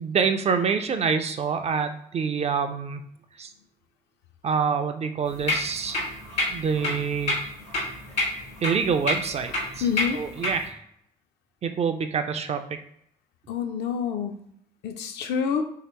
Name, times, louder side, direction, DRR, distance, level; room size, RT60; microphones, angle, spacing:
voice 1, 0.0-3.0 3.4-3.5 4.4-6.1 6.5-7.4 8.6-9.8 10.1-10.8 11.6-12.6, right 6 dB, 30° right, 8 dB, 0.3 m, -26 dB
sound 1, 5.3-10.7, left 2 dB, 80° left, 1.1 m, -30 dB
voice 2, 9.8-10.2 13.5-14.4 14.8-15.6, left 7 dB, 55° left, 5 dB, 0.5 m, -27 dB
3.0 x 2.8 x 2.9 m, 0.71 s
figure-of-eight pair, 45°, 21 cm